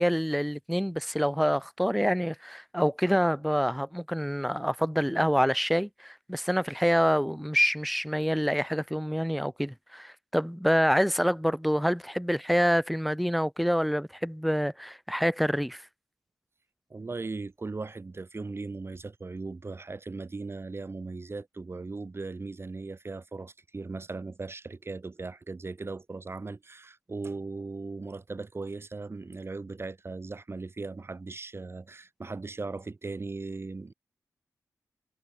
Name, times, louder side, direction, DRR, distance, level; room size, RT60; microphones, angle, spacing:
voice 1, 0.0-15.8, equal, ahead, 4.5 m, -26 dB
voice 2, 16.9-33.9, right 3 dB, 40° right, 7.4 m, -38 dB
wide cardioid pair, 80°, 7 cm